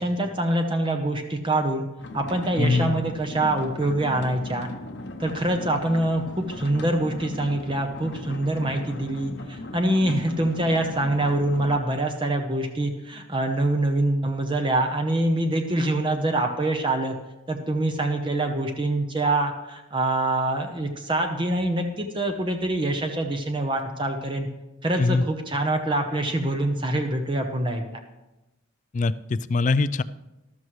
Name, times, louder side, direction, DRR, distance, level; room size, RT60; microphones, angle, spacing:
voice 1, 0.0-1.9 2.1-4.7 5.2-17.2 17.5-24.5 24.8-28.0, right 1 dB, 25° right, 4 dB, 0.8 m, -25 dB
sound 1, 2.0-11.8, left 2 dB, 55° left, 0.8 m, -38 dB
voice 2, 2.6-3.0 25.0-25.2 28.9-30.0, left 3 dB, 40° left, 16 dB, 0.3 m, -22 dB
13.5 x 12.5 x 3.2 m, 1.0 s
head